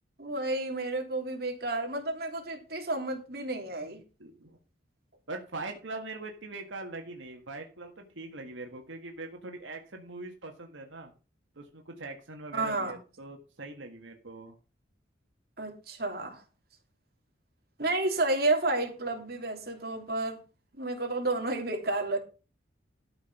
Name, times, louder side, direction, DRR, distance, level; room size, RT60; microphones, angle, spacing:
voice 1, 0.2-4.0 12.5-12.9 15.6-16.4 17.8-20.4 20.7-22.2, right 2 dB, 50° right, 3.0 m, -31 dB
voice 2, 4.2-4.6 5.3-11.1 11.5-14.5, right 2 dB, 85° right, 1.7 m, -42 dB
12.5 x 6.0 x 5.9 m
head